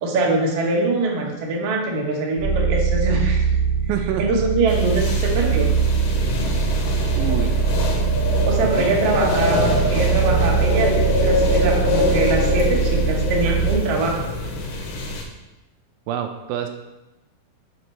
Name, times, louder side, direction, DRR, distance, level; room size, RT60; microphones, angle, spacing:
voice 1, 0.0-3.4 4.2-5.7 8.5-10.9 11.2-14.2, right 2 dB, 65° right, -1 dB, 1.5 m, -23 dB
sound 1, 2.4-13.8, right 6 dB, 50° left, 0.9 m, -22 dB
voice 2, 3.9-4.2 7.1-7.5 8.6-8.9 16.1-16.7, right 10 dB, 85° right, 6 dB, 2.3 m, -27 dB
sound 2, 4.7-15.2, left 2 dB, 75° left, 2.4 m, -24 dB
6.5 x 4.1 x 4.5 m, 0.98 s
omnidirectional pair, 4.2 m